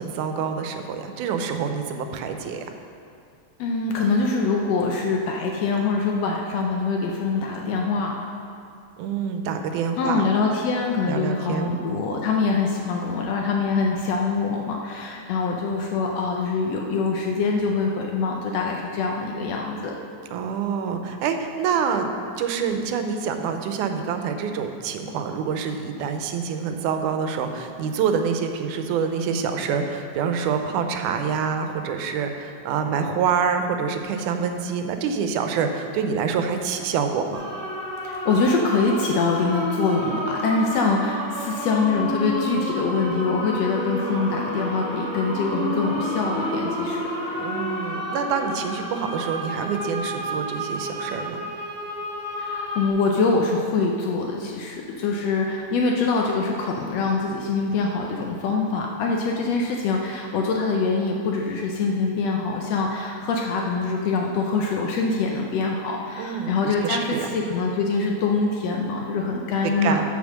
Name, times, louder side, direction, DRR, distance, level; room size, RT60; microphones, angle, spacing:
voice 1, 0.0-2.6 9.0-10.3 11.1-11.8 20.3-22.1 22.4-37.5 47.4-51.4 66.2-67.3 69.6-70.0, right 6 dB, 90° right, 6 dB, 2.2 m, -26 dB
voice 2, 3.6-8.1 10.0-20.0 38.0-47.0 52.4-70.0, left 4 dB, 75° left, 0 dB, 1.6 m, -24 dB
sound 1, 37.3-52.9, equal, 5° left, 1.3 m, -30 dB
7.0 x 6.5 x 6.4 m, 2.4 s
omnidirectional pair, 3.5 m